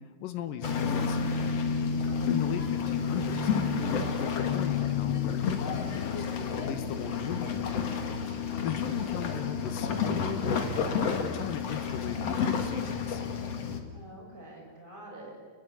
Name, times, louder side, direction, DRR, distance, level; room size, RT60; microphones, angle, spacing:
voice 1, 0.0-1.6 2.3-8.2 8.6-10.5 10.8-13.2, left 10 dB, 85° left, 8 dB, 2.9 m, -38 dB
sound 1, 0.6-13.8, left 6 dB, 50° left, 2.9 m, -30 dB
voice 2, 2.0-2.6 13.9-15.4, right 1 dB, 15° right, -1 dB, 7.2 m, -47 dB
30.0 x 22.0 x 8.4 m, 1.4 s
omnidirectional pair, 3.9 m